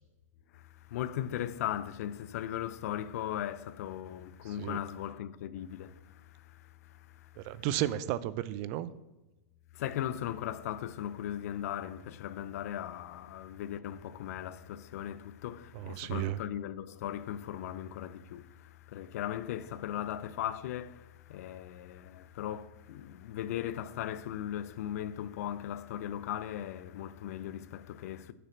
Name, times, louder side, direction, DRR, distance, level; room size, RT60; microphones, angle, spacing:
voice 1, 0.5-7.6 9.7-28.3, left 11 dB, 65° left, 0.6 m, -38 dB
voice 2, 4.5-4.8 7.4-8.9 15.7-16.4, right 13 dB, 50° right, 0.6 m, -33 dB
6.8 x 6.5 x 7.3 m
hypercardioid pair, 120°, 9 cm